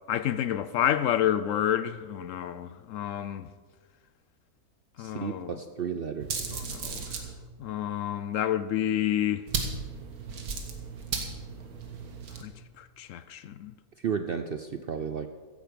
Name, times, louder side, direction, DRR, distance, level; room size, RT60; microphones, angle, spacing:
voice 1, 0.1-3.5 5.0-5.6 6.5-7.2 7.6-9.5 12.4-12.5 12.8-13.7, left 11 dB, 70° left, 0.9 m, -29 dB
voice 2, 5.0-6.5 14.0-15.3, right 7 dB, 60° right, 0.6 m, -33 dB
sound 1, 6.2-7.3 9.5-12.4, right 5 dB, 80° right, 1.9 m, -35 dB
15.0 x 10.5 x 5.2 m
omnidirectional pair, 1.6 m